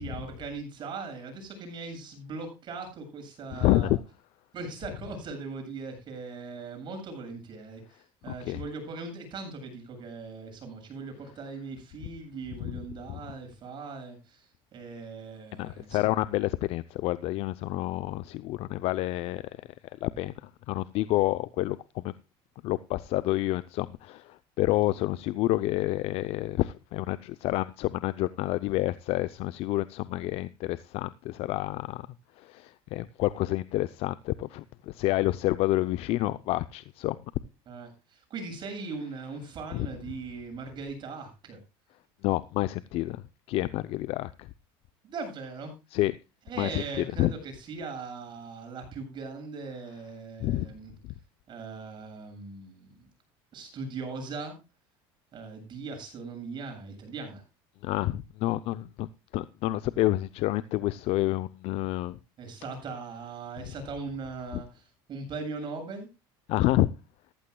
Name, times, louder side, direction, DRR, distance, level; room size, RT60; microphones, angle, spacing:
voice 1, 0.0-4.0 4.5-16.1 37.7-41.6 45.0-45.7 46.5-50.9 51.5-53.1 53.5-54.5 55.3-57.4 62.4-66.1, right 4 dB, 40° right, 7.9 m, -39 dB
voice 2, 3.5-4.0 8.4-8.6 12.6-12.7 13.1-13.2 15.6-19.4 20.0-22.1 22.6-32.1 32.4-37.2 39.7-39.9 42.2-43.2 43.5-44.5 45.9-46.1 46.6-47.3 50.4-50.7 57.8-62.2 64.5-64.6 66.5-66.9, left 16 dB, 60° left, 0.6 m, -28 dB
15.0 x 14.5 x 2.3 m
supercardioid pair, 120°, 12 cm